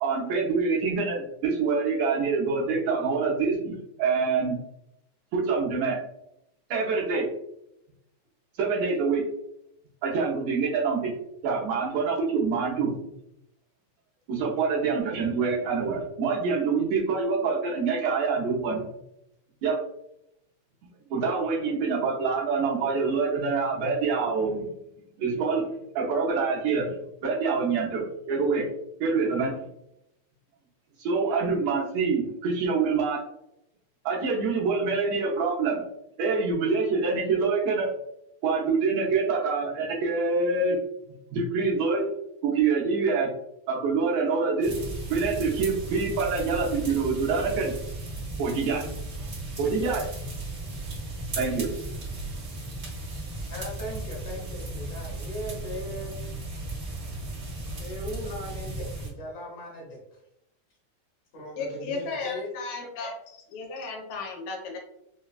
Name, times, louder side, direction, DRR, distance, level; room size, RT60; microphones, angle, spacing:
voice 1, 0.0-4.6 5.3-6.0 6.7-7.3 8.6-9.2 10.0-11.1 11.4-13.1 14.3-19.0 19.6-19.8 21.1-24.7 25.2-25.7 26.0-27.0 27.2-28.7 29.0-29.6 31.0-33.2 34.1-35.8 36.2-37.9 38.4-40.8 41.3-42.1 42.4-43.3 43.7-47.7 48.4-48.8 49.6-50.0 51.4-51.7, right 4 dB, 75° right, -3 dB, 2.0 m, -26 dB
sound 1, 44.6-59.1, right 2 dB, 50° right, 1.3 m, -36 dB
voice 2, 53.5-56.1 57.8-60.2 61.3-62.5, left 1 dB, 65° left, -3 dB, 1.7 m, -38 dB
voice 3, 61.6-63.1 63.5-64.8, left 3 dB, 80° left, 1 dB, 2.0 m, -34 dB
5.0 x 2.3 x 2.3 m, 0.81 s
omnidirectional pair, 3.4 m